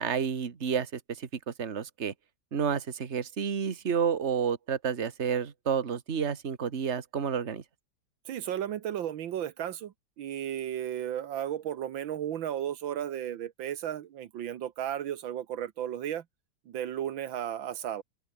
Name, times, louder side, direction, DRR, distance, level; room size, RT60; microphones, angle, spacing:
voice 1, 0.0-2.1 2.5-7.6, right 7 dB, 35° right, 1.8 m, -30 dB
voice 2, 8.3-16.2 16.7-18.0, right 10 dB, 80° right, 1.8 m, -34 dB
open air
omnidirectional pair, 2.1 m